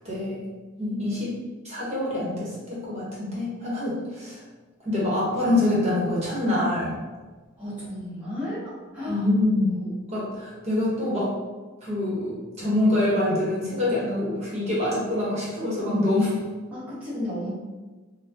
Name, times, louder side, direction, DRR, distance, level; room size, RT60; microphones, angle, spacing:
voice 1, 0.0-0.4 0.8-1.3 1.6-4.4 4.8-6.9 9.1-9.7 10.1-11.3 11.8-16.3, left 1 dB, 35° right, -7 dB, 1.1 m, -25 dB
voice 2, 7.6-9.3 9.8-9.9 16.7-17.5, left 1 dB, 5° right, -10 dB, 1.3 m, -33 dB
3.9 x 2.2 x 2.7 m, 1.3 s
head